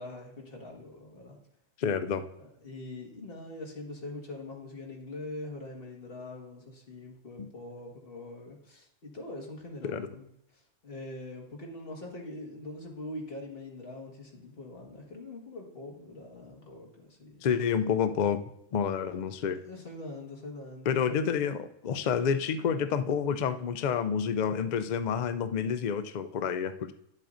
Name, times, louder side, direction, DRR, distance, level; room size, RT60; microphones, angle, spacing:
voice 1, 0.0-1.4 2.4-17.4 19.6-21.4, left 2 dB, 45° left, -1 dB, 1.9 m, -43 dB
voice 2, 1.8-2.3 9.8-10.1 17.4-18.4 18.7-19.6 20.9-26.9, left 7 dB, 90° left, 10 dB, 0.4 m, -29 dB
10.0 x 7.5 x 2.5 m, 0.76 s
omnidirectional pair, 1.4 m